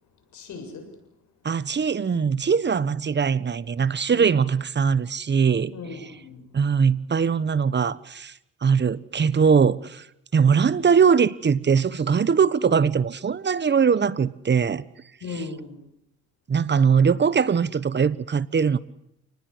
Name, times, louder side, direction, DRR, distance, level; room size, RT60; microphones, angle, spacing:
voice 1, 0.3-0.8 4.1-4.3 5.7-6.4 15.2-15.9, left 3 dB, 70° left, 7.4 m, -37 dB
voice 2, 1.4-6.1 6.5-8.3 8.6-10.0 10.3-14.8 15.3-15.4 16.5-18.8, right 6 dB, 35° right, 1.3 m, -21 dB
28.5 x 19.5 x 8.1 m
cardioid pair, 90°, 30 cm